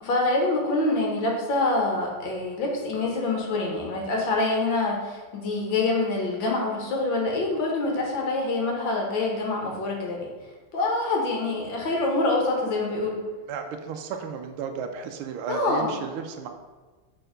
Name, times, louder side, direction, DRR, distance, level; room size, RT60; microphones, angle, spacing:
voice 1, 0.0-10.3 10.7-13.2 15.5-15.9, left 2 dB, 65° left, 0 dB, 1.9 m, -26 dB
voice 2, 13.5-16.5, right 6 dB, 80° right, 5 dB, 1.5 m, -34 dB
6.8 x 4.5 x 5.0 m, 1.3 s
omnidirectional pair, 2.4 m